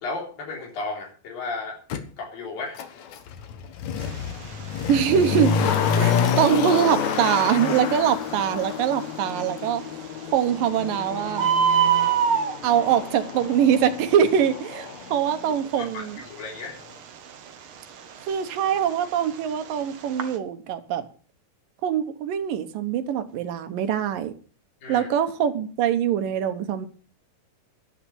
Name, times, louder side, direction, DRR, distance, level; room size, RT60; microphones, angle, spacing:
voice 1, 0.0-1.8 2.2-2.8 15.8-16.8 24.8-25.1, left 3 dB, 75° left, 5.3 m, -34 dB
Motor vehicle (road), 1.9-2.0 2.8-15.7 16.0-16.1, left 7 dB, 60° left, 2.4 m, -28 dB
Bird, 4.0-20.4, right 8 dB, 60° right, 1.5 m, -29 dB
voice 2, 4.9-5.6 6.0-9.8 10.3-11.5 12.6-16.2 18.3-21.1 21.8-24.4 24.9-26.9, right 9 dB, 75° right, 2.8 m, -23 dB
11.5 x 9.9 x 7.0 m
omnidirectional pair, 4.0 m